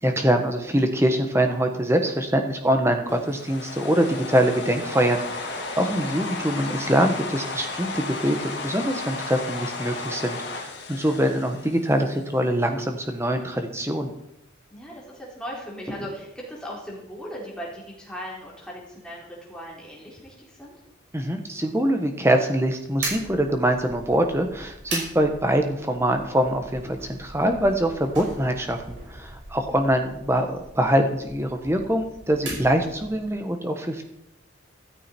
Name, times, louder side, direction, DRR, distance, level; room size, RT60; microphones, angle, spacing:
voice 1, 0.0-14.1 21.1-34.0, right 1 dB, 15° right, 5 dB, 1.4 m, -24 dB
sound 1, 3.1-12.3, left 3 dB, 55° left, 2.2 m, -34 dB
voice 2, 14.7-20.8 29.5-29.8, equal, 5° left, -4 dB, 3.8 m, -38 dB
sound 2, 23.0-33.3, right 2 dB, 65° right, 5.6 m, -39 dB
13.5 x 13.0 x 4.5 m, 0.82 s
head